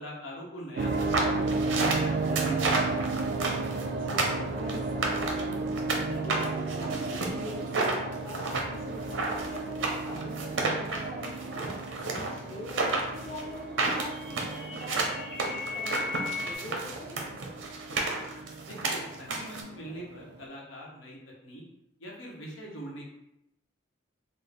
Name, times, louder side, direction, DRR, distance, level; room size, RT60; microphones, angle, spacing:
voice 1, 0.0-1.6 1.9-3.2 18.7-21.6 22.0-23.1, equal, 90° left, -3 dB, 0.9 m, -42 dB
sound 1, 0.8-20.4, right 3 dB, 55° right, 0.3 m, -34 dB
sound 2, 0.9-6.0 6.3-19.6, right 3 dB, 85° right, 0.6 m, -31 dB
voice 2, 3.9-5.7 6.1-11.6 12.0-17.4, left 1 dB, 45° left, -4 dB, 0.7 m, -43 dB
sound 3, 13.4-16.5, left 4 dB, ahead, 0.5 m, -38 dB
4.3 x 2.0 x 3.4 m, 0.83 s
head